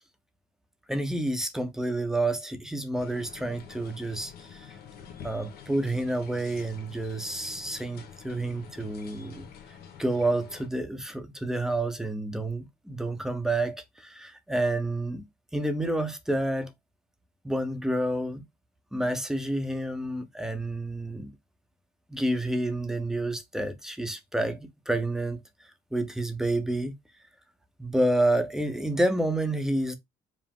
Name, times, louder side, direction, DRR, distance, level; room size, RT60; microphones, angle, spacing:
voice 1, 0.9-4.7 5.2-9.5 10.0-15.2 15.5-16.7 17.4-18.4 18.9-21.3 22.1-25.4 25.9-26.9 27.8-29.9, right 1 dB, 5° right, 0.8 m, -29 dB
sound 1, 2.9-10.7, left 7 dB, 65° left, 1.2 m, -47 dB
4.9 x 2.0 x 3.6 m
cardioid pair, 110°, 17 cm